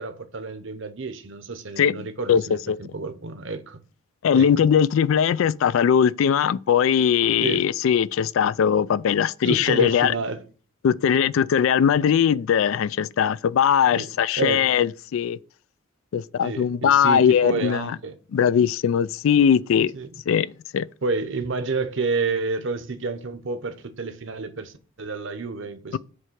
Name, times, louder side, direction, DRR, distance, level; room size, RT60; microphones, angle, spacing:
voice 1, 0.0-3.8 4.3-4.5 7.4-7.7 9.4-10.4 13.9-14.1 14.4-14.7 16.4-18.2 19.9-20.1 21.0-26.0, right 4 dB, 60° right, 0.8 m, -29 dB
voice 2, 4.2-10.1 10.8-15.4 16.1-18.0 18.3-19.9 20.3-20.9, left 8 dB, 70° left, 0.3 m, -20 dB
7.6 x 3.3 x 6.2 m
head